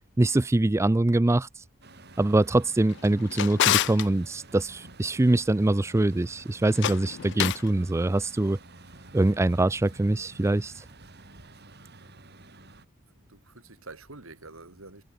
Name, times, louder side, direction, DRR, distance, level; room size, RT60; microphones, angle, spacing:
voice 1, 0.2-1.6 2.2-8.6 9.1-10.8, right 2 dB, 15° right, 0.4 m, -24 dB
Truck, 1.8-12.8, right 2 dB, 55° right, 3.7 m, -50 dB
Drawer open or close, 2.9-4.1 6.7-7.7, left 13 dB, 60° left, 0.3 m, -27 dB
voice 2, 13.2-15.0, right 3 dB, 85° right, 4.0 m, -47 dB
head